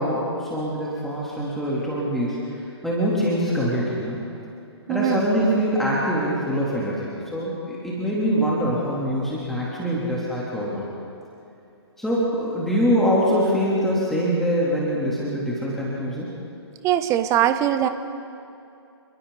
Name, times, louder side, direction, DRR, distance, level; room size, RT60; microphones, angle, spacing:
voice 1, 0.0-4.2 4.9-10.9 12.0-16.3, equal, ahead, -7 dB, 3.5 m, -24 dB
voice 2, 4.9-5.3 16.8-17.9, right 11 dB, 20° right, 10 dB, 1.0 m, -21 dB
30.0 x 22.0 x 4.2 m, 2.7 s
figure-of-eight pair, 130°, 15 cm